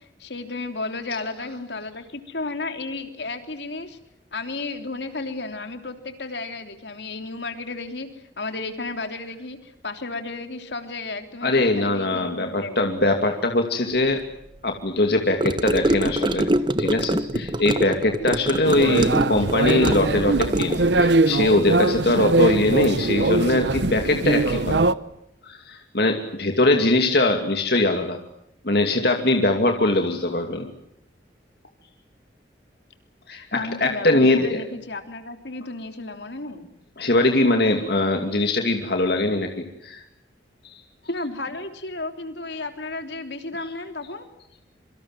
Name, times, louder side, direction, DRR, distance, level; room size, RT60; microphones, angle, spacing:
voice 1, 0.0-4.0 4.3-12.9 17.3-17.4 33.5-36.7 41.1-44.3, left 3 dB, 75° left, 7 dB, 3.3 m, -33 dB
voice 2, 11.4-14.2 14.6-16.5 16.8-17.2 17.6-24.8 25.4-28.2 28.6-30.7 33.3-34.6 37.0-40.0 40.6-40.8, left 2 dB, 60° left, 4 dB, 2.7 m, -21 dB
Gurgling / Car passing by / Sink (filling or washing), 15.4-21.1, right 1 dB, 25° right, 1.1 m, -25 dB
sound 1, 18.6-24.9, right 2 dB, 80° right, 0.9 m, -21 dB
27.0 x 24.5 x 7.6 m, 0.78 s
head